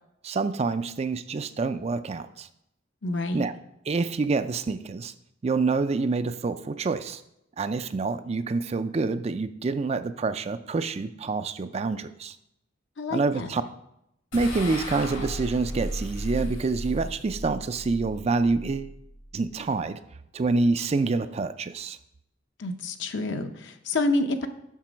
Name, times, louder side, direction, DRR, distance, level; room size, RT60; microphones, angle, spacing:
voice 1, 0.2-2.5 3.3-3.5 3.9-5.1 5.4-7.2 7.6-12.4 13.1-13.6 14.3-18.9 19.3-20.0 20.3-22.0, right 3 dB, 35° right, 11 dB, 0.4 m, -27 dB
voice 2, 3.0-3.5 13.0-13.5 22.6-24.5, left 2 dB, 65° left, 7 dB, 0.7 m, -28 dB
sound 1, 14.3-19.7, equal, 85° left, 3.0 m, -35 dB
7.4 x 6.2 x 5.0 m, 0.81 s
head